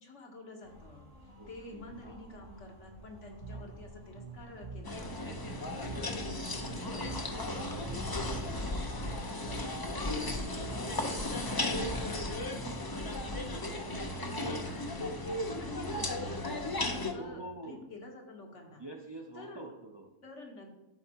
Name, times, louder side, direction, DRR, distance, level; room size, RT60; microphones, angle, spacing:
voice 1, 0.0-11.1 11.4-18.8 19.3-19.6 20.2-20.8, left 1 dB, 70° left, 1 dB, 1.6 m, -49 dB
sound 1, 0.6-8.3, left 1 dB, 90° right, 2.3 m, -54 dB
voice 2, 1.4-2.2 3.5-3.8 5.6-6.2 15.4-16.1 17.1-17.8 18.8-20.1, right 1 dB, 30° right, 0 dB, 0.5 m, -47 dB
Bass guitar, 3.4-13.0, right 4 dB, 60° right, 1.3 m, -47 dB
sound 2, 4.8-17.1, left 1 dB, 30° left, 0.4 m, -35 dB
11.5 x 4.5 x 2.9 m, 1.0 s
omnidirectional pair, 1.3 m